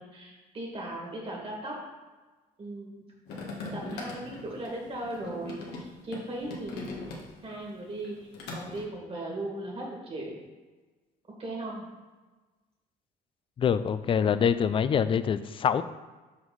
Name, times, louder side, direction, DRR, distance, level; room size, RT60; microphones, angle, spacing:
voice 1, 0.0-1.7 2.6-3.0 3.7-7.0 7.4-8.2 8.5-10.4 11.4-11.8, right 1 dB, 35° right, -2 dB, 2.0 m, -37 dB
sound 1, 3.3-7.6 7.9-8.8, left 3 dB, 80° left, 1.5 m, -41 dB
voice 2, 13.6-15.8, left 7 dB, 30° left, 13 dB, 0.3 m, -25 dB
6.0 x 5.4 x 4.0 m, 1.3 s
cardioid pair, 110°, 17 cm